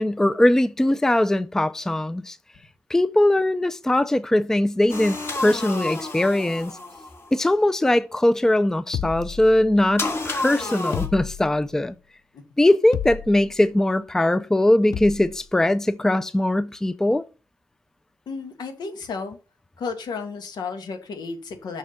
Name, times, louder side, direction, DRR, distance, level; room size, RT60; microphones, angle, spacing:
voice 1, 0.0-2.4 2.9-6.7 7.3-12.0 12.6-17.2, left 1 dB, 5° left, 0.4 m, -20 dB
sound 1, 4.9-7.4 10.0-11.1, left 2 dB, 35° left, 1.8 m, -30 dB
sound 2, 8.9-10.0 10.9-11.8 12.9-13.6 14.9-15.4, left 9 dB, 60° left, 0.5 m, -32 dB
voice 2, 18.3-19.4 19.8-21.8, left 4 dB, 90° left, 2.0 m, -33 dB
6.5 x 6.1 x 6.8 m
wide cardioid pair, 165°, 7 cm